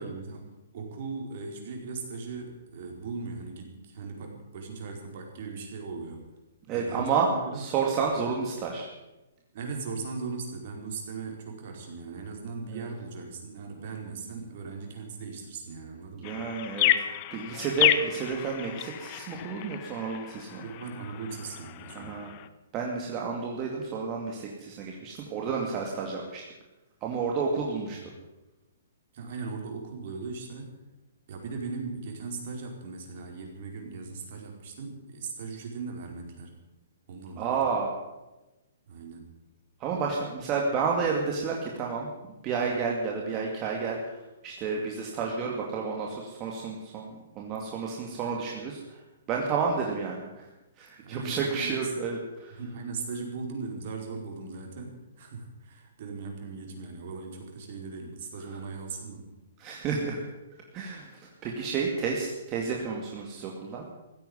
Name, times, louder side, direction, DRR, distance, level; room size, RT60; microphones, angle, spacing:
voice 1, 0.0-6.2 6.7-7.8 9.5-16.4 20.6-22.2 27.9-28.2 29.1-30.8 31.3-36.5 37.1-37.6 38.9-39.3 51.0-51.9 52.6-59.3, right 4 dB, 55° right, 1 dB, 4.7 m, -38 dB
voice 2, 6.7-7.3 7.5-8.9 12.7-12.9 16.2-16.9 17.3-20.6 21.9-22.3 22.7-26.4 27.0-28.1 37.4-37.9 39.8-42.1 42.4-44.2 44.4-49.0 49.3-50.3 50.8-52.6 59.6-60.2 60.7-63.9, right 5 dB, 30° right, -1 dB, 2.4 m, -31 dB
sound 1, 16.2-22.5, left 14 dB, 40° left, 0.9 m, -30 dB
15.5 x 9.2 x 9.7 m, 1.0 s
hypercardioid pair, 140°, 0 cm